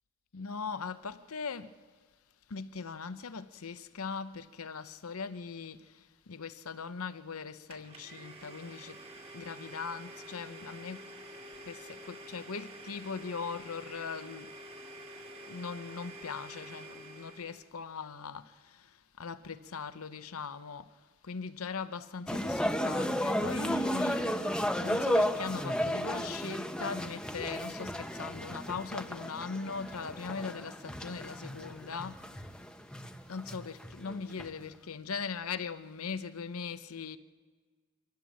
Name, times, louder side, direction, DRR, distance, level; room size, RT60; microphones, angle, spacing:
voice 1, 0.3-1.7 2.5-5.8 6.3-9.0 9.3-11.0 11.7-14.5 15.5-18.5 19.2-20.9 21.2-24.2 24.8-32.2 33.3-37.2, left 5 dB, 80° left, 0.8 m, -40 dB
Domestic sounds home sounds, 7.7-17.7, right 1 dB, 30° right, 2.1 m, -48 dB
sound 1, 22.3-34.5, equal, 5° left, 0.9 m, -33 dB
25.0 x 15.0 x 7.5 m
head